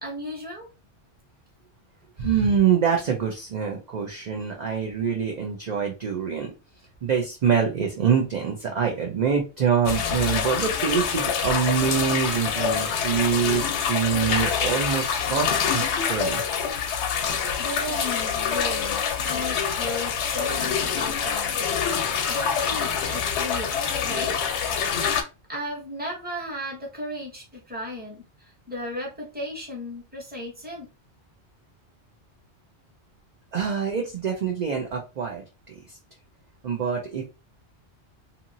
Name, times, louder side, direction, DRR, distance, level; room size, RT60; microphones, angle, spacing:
voice 1, 0.0-0.7 17.6-24.4 25.5-30.9, left 1 dB, 10° right, -2 dB, 1.0 m, -35 dB
voice 2, 2.2-6.5 7.0-16.4 33.5-36.0 36.6-37.2, right 7 dB, 50° right, 1 dB, 0.6 m, -25 dB
sound 1, 9.9-25.2, left 7 dB, 80° left, 0.9 m, -26 dB
2.8 x 2.6 x 2.6 m, 0.29 s
omnidirectional pair, 1.2 m